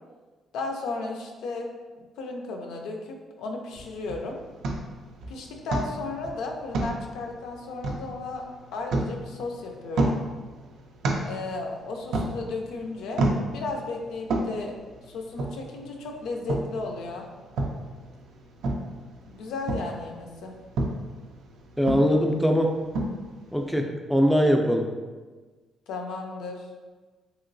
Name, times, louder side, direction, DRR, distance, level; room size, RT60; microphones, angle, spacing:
voice 1, 0.5-1.7 2.2-4.4 5.3-8.4 8.7-10.2 11.2-13.3 13.5-14.7 15.1-17.3 19.3-20.5 25.9-26.6, left 3 dB, 85° left, 2 dB, 0.4 m, -34 dB
sound 1, 3.7-23.7, right 2 dB, 75° right, 0.4 m, -33 dB
voice 2, 21.8-22.7 23.5-24.9, equal, ahead, 2 dB, 0.4 m, -21 dB
2.9 x 2.8 x 2.6 m, 1.3 s
cardioid pair, 90°, 0 cm